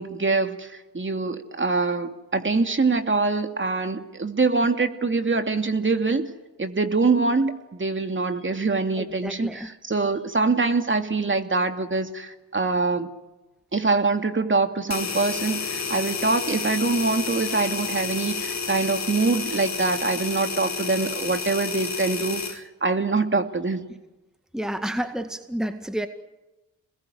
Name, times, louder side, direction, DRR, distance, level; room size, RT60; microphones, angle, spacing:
voice 1, 0.0-6.3 6.6-13.1 13.7-23.9, right 3 dB, 30° right, 6 dB, 2.7 m, -24 dB
voice 2, 9.0-9.7 24.5-26.1, right 1 dB, ahead, 8 dB, 2.0 m, -30 dB
sound 1, 14.9-22.6, left 5 dB, 45° left, 2.7 m, -30 dB
27.5 x 21.0 x 9.4 m, 1.1 s
hypercardioid pair, 45°, 39 cm